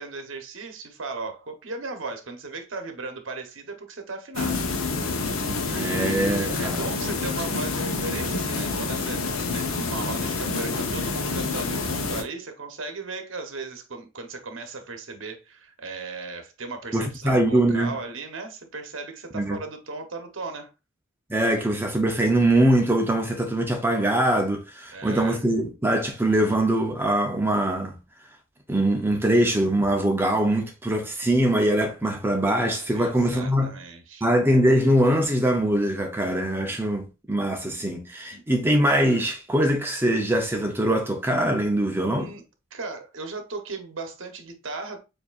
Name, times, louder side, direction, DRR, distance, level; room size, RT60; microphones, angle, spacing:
voice 1, 0.0-4.7 5.0-5.2 5.6-20.7 24.9-25.4 32.9-34.2 38.3-38.4 42.1-42.4 42.7-45.0, right 3 dB, 65° right, 0.9 m, -36 dB
sound 1, 4.3-12.2, left 3 dB, 85° left, 0.8 m, -28 dB
voice 2, 5.7-6.9 16.9-18.0 19.3-19.6 21.3-28.0 28.7-33.7 34.2-42.3, right 1 dB, 10° right, 0.5 m, -22 dB
6.9 x 2.6 x 2.4 m
head